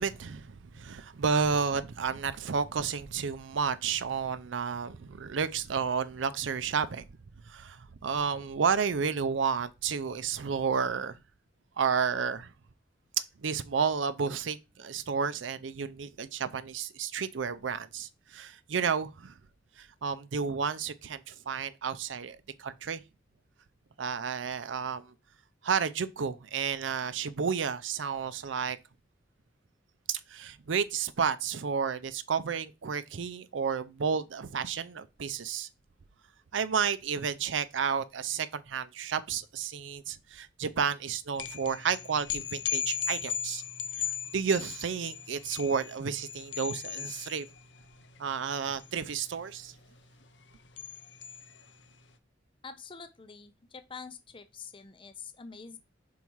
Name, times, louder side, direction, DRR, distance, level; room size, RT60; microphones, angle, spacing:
voice 1, 0.0-7.1 7.4-11.2 11.8-12.5 13.4-19.4 19.8-23.0 24.0-25.1 25.6-28.8 30.1-35.7 36.5-43.6 44.3-47.5 48.2-49.7, right 6 dB, 80° right, 0.5 m, -31 dB
sound 1, 41.3-52.0, left 9 dB, 65° left, 0.7 m, -38 dB
voice 2, 52.6-55.8, left 5 dB, 30° left, 0.6 m, -46 dB
5.5 x 4.7 x 4.6 m
head